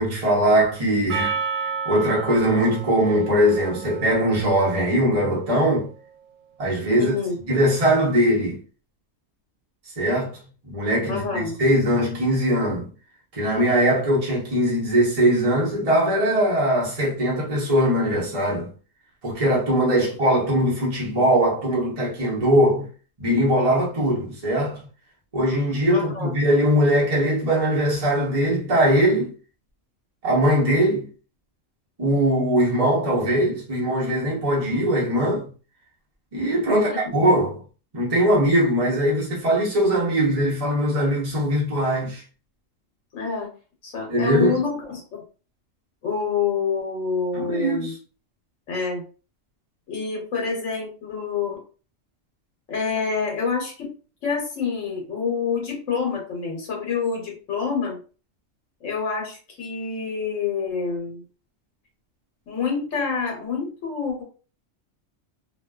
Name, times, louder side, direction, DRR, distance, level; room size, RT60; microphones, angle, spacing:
voice 1, 0.0-1.4 1.8-5.9 6.6-7.1 7.5-8.6 10.0-10.3 10.6-12.9 13.3-18.7 19.2-22.9 23.2-24.8 25.3-29.3 30.2-31.1 32.0-35.4 36.3-37.6 37.9-42.2 44.1-44.6 47.3-47.9, equal, 30° right, 0.9 m, -21 dB
Percussion, 1.1-5.6, right 6 dB, 80° right, 1.0 m, -32 dB
voice 2, 7.0-7.4 11.1-11.6 20.0-20.1 25.9-26.4 36.7-37.0 43.1-43.5 43.8-45.2 46.0-47.9 48.7-49.0 49.9-51.6 52.7-53.9 54.2-58.0 58.8-61.2 62.5-64.2, left 5 dB, 80° left, 1.1 m, -27 dB
2.5 x 2.2 x 2.2 m
omnidirectional pair, 1.3 m